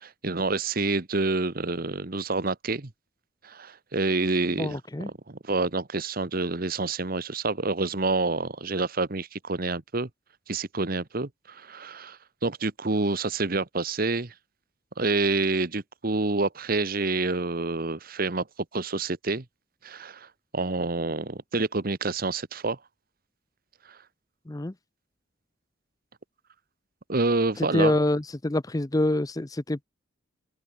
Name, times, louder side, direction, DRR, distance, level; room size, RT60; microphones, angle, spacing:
voice 1, 0.0-2.9 3.4-4.8 5.3-10.1 10.5-14.3 15.0-18.5 18.7-19.4 19.8-22.8 23.9-24.0 27.1-27.9, right 3 dB, 50° right, 1.2 m, -28 dB
voice 2, 4.6-5.1 24.5-24.7 27.6-29.8, left 1 dB, 20° left, 0.6 m, -26 dB
open air
head